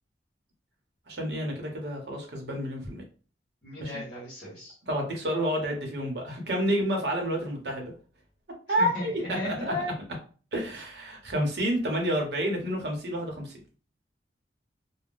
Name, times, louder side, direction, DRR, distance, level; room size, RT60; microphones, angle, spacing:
voice 1, 1.1-3.0 3.8-3.9 4.9-7.9 8.7-9.7 10.5-13.6, equal, 65° right, 1 dB, 0.9 m, -29 dB
voice 2, 3.6-4.8 8.8-9.9, left 1 dB, 40° left, -7 dB, 1.1 m, -35 dB
2.5 x 2.1 x 3.5 m, 0.40 s
head